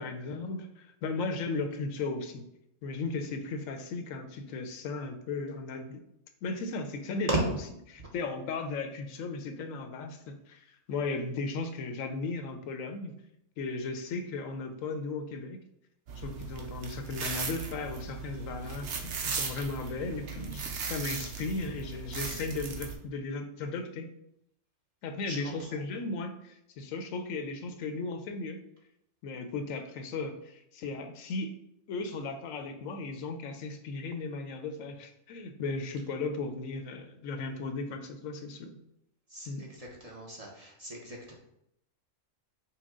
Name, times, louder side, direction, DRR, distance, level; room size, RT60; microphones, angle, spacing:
voice 1, 0.0-2.4 2.8-6.0 6.4-7.5 7.9-13.2 13.6-15.6 16.2-24.1 25.0-28.6 29.2-31.6 31.9-38.8 39.5-39.7, left 3 dB, 90° left, 7 dB, 1.0 m, -36 dB
sound 1, 16.1-22.9, right 5 dB, 65° right, 0.9 m, -37 dB
voice 2, 25.3-25.7 39.3-41.3, right 1 dB, 35° right, -2 dB, 0.8 m, -37 dB
5.8 x 2.2 x 3.6 m, 0.77 s
omnidirectional pair, 1.4 m